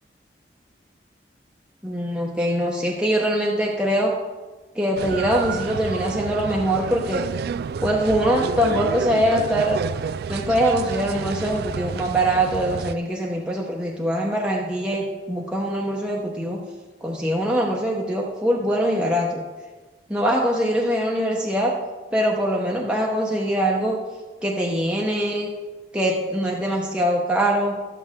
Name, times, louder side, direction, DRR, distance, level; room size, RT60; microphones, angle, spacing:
voice 1, 1.8-4.1 4.7-7.2 7.8-9.8 10.3-16.6 17.0-19.4 20.1-21.7 22.1-24.0 24.4-25.5 25.9-27.8, equal, 5° right, -3 dB, 0.9 m, -23 dB
sound 1, 5.0-12.9, right 6 dB, 60° right, 0.3 m, -30 dB
12.5 x 8.8 x 3.7 m, 1.3 s
head